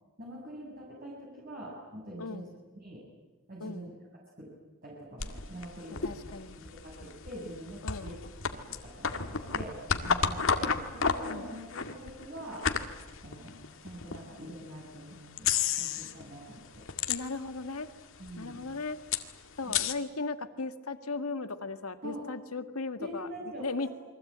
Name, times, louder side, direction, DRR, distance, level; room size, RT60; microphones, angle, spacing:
voice 1, 0.2-2.5 2.8-3.0 3.5-3.9 4.4-4.5 4.8-8.1 8.5-9.8 10.0-12.7 13.2-16.9 18.2-18.6 19.7-19.8 22.0-22.2 23.0-23.9, equal, 45° right, -4 dB, 7.2 m, -44 dB
sound 1, 5.2-14.2 14.8-14.9 15.4-16.3 16.5-17.7 17.9-18.0 18.2-19.9, left 6 dB, 65° left, 2.0 m, -32 dB
voice 2, 6.0-6.6 7.8-8.2 11.2-11.5 17.1-17.9 18.4-19.0 19.6-23.9, left 3 dB, 85° left, 9 dB, 1.9 m, -37 dB
28.5 x 23.5 x 8.8 m, 1.3 s
head